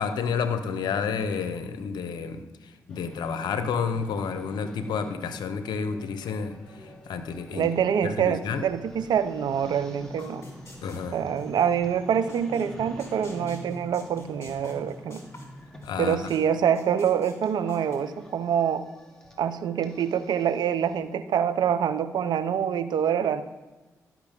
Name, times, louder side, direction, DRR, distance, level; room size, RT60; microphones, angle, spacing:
voice 1, 0.0-2.4 2.9-6.6 7.1-7.7 8.0-8.6 10.8-11.2 15.8-16.3, left 6 dB, 80° left, 9 dB, 0.6 m, -30 dB
sound 1, 2.9-21.0, equal, 5° left, 2.3 m, -46 dB
voice 2, 7.5-10.4 11.1-15.2 16.0-18.8 19.4-23.4, right 8 dB, 75° right, 13 dB, 0.5 m, -25 dB
sound 2, 10.2-11.9 12.3-12.7 13.0-16.4 16.7-18.0, left 2 dB, 35° left, 2.5 m, -47 dB
11.5 x 5.9 x 3.5 m, 1.2 s
supercardioid pair, 40°, 7 cm